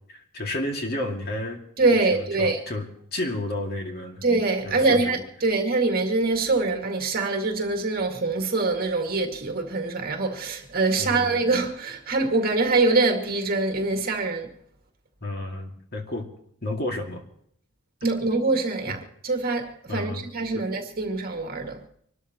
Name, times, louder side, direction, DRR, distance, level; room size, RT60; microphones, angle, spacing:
voice 1, 0.1-1.6 2.1-4.2 4.6-5.2 11.0-11.4 15.2-16.3 16.6-17.2 19.9-20.2 20.5-20.6, left 1 dB, 45° left, 2.2 m, -31 dB
voice 2, 1.8-2.6 4.2-14.5 18.0-21.8, right 3 dB, 40° right, 2.1 m, -24 dB
26.0 x 13.0 x 3.0 m
head